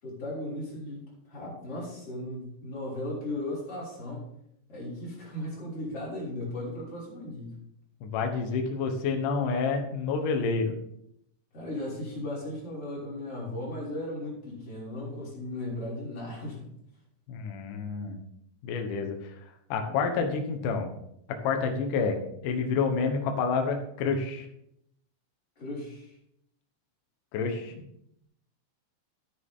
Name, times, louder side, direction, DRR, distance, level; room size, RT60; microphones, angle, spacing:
voice 1, 0.0-4.3 4.7-7.5 11.5-16.7 19.9-20.0 25.6-26.1, left 1 dB, 30° left, -7 dB, 6.2 m, -36 dB
voice 2, 8.0-10.8 17.3-18.2 18.6-19.2 19.7-20.9 21.4-22.2 22.4-24.5 27.3-27.7, left 5 dB, 85° left, 4 dB, 1.8 m, -28 dB
12.5 x 10.0 x 3.7 m, 0.75 s
omnidirectional pair, 5.8 m